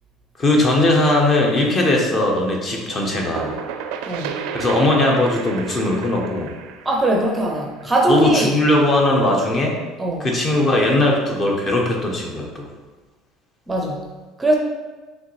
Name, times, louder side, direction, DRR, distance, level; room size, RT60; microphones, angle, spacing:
voice 1, 0.4-3.5 4.5-6.5 8.1-9.8 10.2-12.7, left 1 dB, 30° left, 0 dB, 0.9 m, -19 dB
sound 1, 2.9-8.5, right 7 dB, 80° right, 0.4 m, -33 dB
voice 2, 4.1-4.4 6.8-8.5 10.0-10.3 13.7-14.0 14.4-14.5, right 2 dB, 15° right, 0 dB, 0.6 m, -20 dB
5.4 x 3.1 x 3.2 m, 1.3 s
cardioid pair, 130°, 0 cm